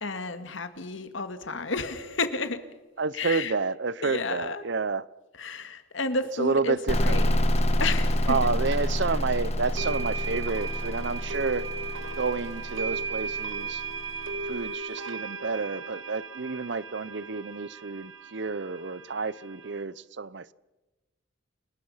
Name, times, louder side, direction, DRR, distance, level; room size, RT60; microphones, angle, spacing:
voice 1, 0.0-2.6 3.1-3.5 4.0-4.6 5.4-7.3 7.8-8.5, left 3 dB, 70° left, 2.0 m, -31 dB
voice 2, 3.0-5.0 6.4-7.2 8.3-11.7 12.2-13.8 14.5-20.5, right 4 dB, 60° right, 0.7 m, -30 dB
sound 1, 6.9-14.4, left 1 dB, 30° left, 1.6 m, -28 dB
sound 2, 8.7-8.8 9.8-19.8, right 5 dB, 85° right, 1.8 m, -36 dB
29.5 x 20.0 x 5.6 m
head